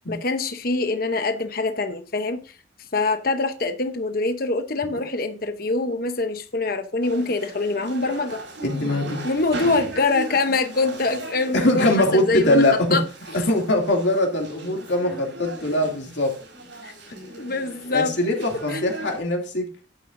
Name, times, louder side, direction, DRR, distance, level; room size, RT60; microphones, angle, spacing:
voice 1, 0.1-2.4 2.9-8.4 9.2-12.6 12.9-13.0 16.8-16.9 17.4-18.2 18.7-18.8, left 3 dB, 50° left, 0.9 m, -24 dB
sound 1, 7.0-19.2, right 1 dB, 75° right, 5.0 m, -38 dB
voice 2, 8.6-9.2 11.5-13.0 13.3-16.4 17.9-19.8, left 1 dB, 65° left, 2.6 m, -22 dB
11.0 x 8.8 x 2.7 m
head